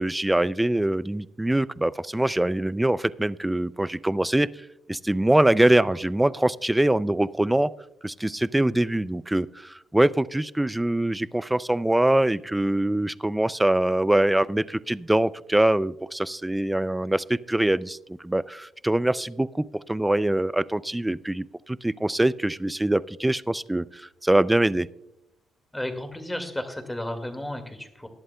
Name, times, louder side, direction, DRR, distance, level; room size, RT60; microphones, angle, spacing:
voice 1, 0.0-4.5 4.9-7.7 8.0-18.0 18.2-24.9, right 1 dB, 10° right, 18 dB, 0.4 m, -23 dB
voice 2, 25.7-28.1, left 1 dB, 10° left, 6 dB, 2.0 m, -33 dB
20.5 x 11.0 x 2.3 m, 0.85 s
cardioid pair, 90°, 0 cm